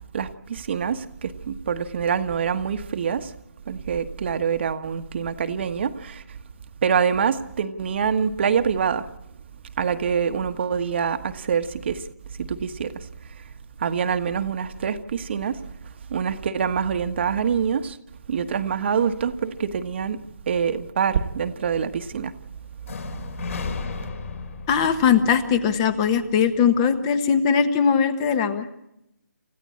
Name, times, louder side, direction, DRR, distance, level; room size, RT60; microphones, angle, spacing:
voice 1, 0.1-3.3 3.7-6.2 6.8-9.1 9.8-12.0 12.4-12.9 13.8-15.6 16.1-18.0 18.3-20.2 20.5-22.3, right 7 dB, 40° right, 1.3 m, -25 dB
sound 1, 22.8-26.8, left 4 dB, 50° left, 3.6 m, -35 dB
voice 2, 24.7-28.7, left 7 dB, 20° left, 1.3 m, -20 dB
29.0 x 15.5 x 8.5 m
figure-of-eight pair, 160°, 9 cm